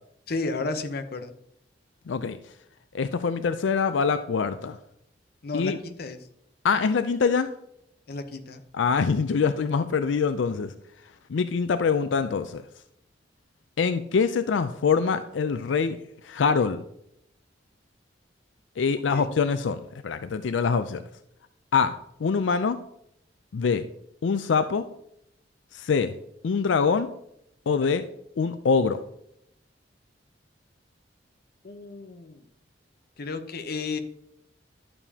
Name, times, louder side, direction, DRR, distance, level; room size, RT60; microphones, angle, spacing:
voice 1, 0.3-1.3 5.4-6.2 8.1-8.6 19.1-19.3 31.6-32.4 33.2-34.0, left 3 dB, 55° left, 7 dB, 0.8 m, -32 dB
voice 2, 2.1-2.4 2.9-4.8 5.5-5.8 6.6-7.5 8.7-10.7 11.3-12.6 13.8-16.0 16.2-16.8 18.8-21.0 21.7-22.8 23.5-23.9 24.2-24.8 25.7-26.1 26.4-27.1 27.7-28.1 28.4-29.0, left 5 dB, 90° left, 11 dB, 0.4 m, -24 dB
11.0 x 7.0 x 2.8 m, 0.74 s
head